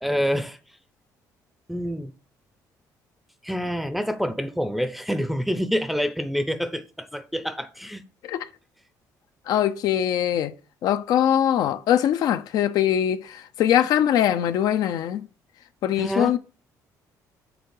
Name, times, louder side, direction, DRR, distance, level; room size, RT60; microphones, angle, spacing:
voice 1, 0.0-0.6 1.7-2.1 3.4-8.0 16.0-16.4, equal, ahead, 0.6 m, -27 dB
voice 2, 9.5-10.5 10.8-15.2 15.8-16.4, left 10 dB, 70° left, 0.5 m, -22 dB
7.0 x 3.7 x 6.4 m
cardioid pair, 135°, 7 cm